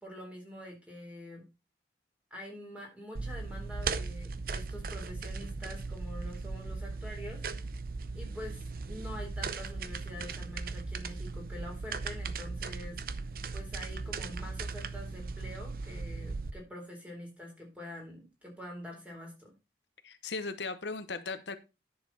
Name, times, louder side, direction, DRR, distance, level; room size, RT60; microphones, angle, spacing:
voice 1, 0.0-1.4 2.3-7.4 8.1-13.2 13.5-19.5, left 1 dB, 5° right, 0 dB, 3.7 m, -46 dB
sound 1, 3.2-16.5, right 4 dB, 55° right, 0.7 m, -38 dB
voice 2, 20.0-21.6, left 4 dB, 75° left, 10 dB, 0.9 m, -37 dB
10.5 x 6.8 x 4.1 m, 0.27 s
head